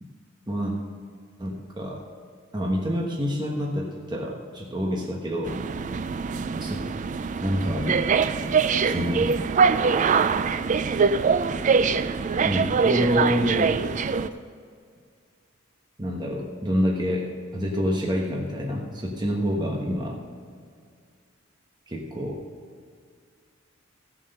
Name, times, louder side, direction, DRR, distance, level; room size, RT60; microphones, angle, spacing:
voice 1, 1.4-2.1 2.5-5.6 6.6-6.8 7.4-8.0 8.8-9.4 12.4-13.7 16.0-20.1 21.9-22.4, equal, 20° right, -1 dB, 1.2 m, -27 dB
sound 1, 5.4-14.3, right 5 dB, 35° right, 0.3 m, -23 dB
15.5 x 7.7 x 5.4 m, 2.1 s
head